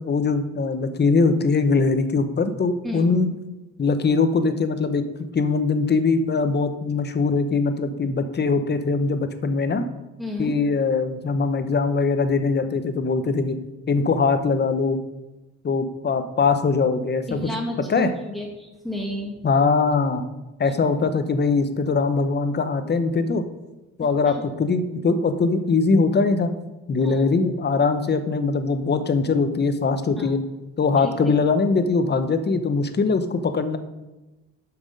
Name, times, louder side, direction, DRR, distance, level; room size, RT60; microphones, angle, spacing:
voice 1, 0.0-3.3 3.8-5.0 5.3-9.9 10.4-13.6 13.9-15.0 15.6-17.5 17.9-18.1 19.4-20.2 20.6-23.4 24.0-26.5 26.9-30.4 30.8-33.8, left 4 dB, 35° left, 9 dB, 0.9 m, -21 dB
voice 2, 10.2-10.5 17.3-19.4 20.6-20.7 24.3-24.4 27.0-27.2 30.2-30.3 31.0-31.1, left 1 dB, ahead, -1 dB, 2.2 m, -32 dB
7.4 x 6.0 x 5.3 m, 1.1 s
cardioid pair, 90°, 30 cm